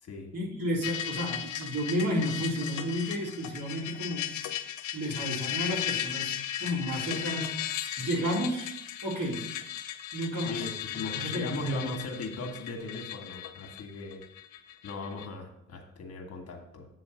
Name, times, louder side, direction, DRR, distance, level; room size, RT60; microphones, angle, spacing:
voice 1, 0.3-4.4 4.9-7.6 8.0-8.8 9.0-9.5 10.1-11.8, equal, 55° right, -2 dB, 2.4 m, -32 dB
sound 1, 0.8-15.3, left 10 dB, 75° left, 0.7 m, -36 dB
voice 2, 10.4-14.2 14.8-16.9, left 2 dB, 55° left, 2 dB, 1.4 m, -38 dB
8.1 x 3.1 x 6.3 m, 0.78 s
cardioid pair, 90°, 30 cm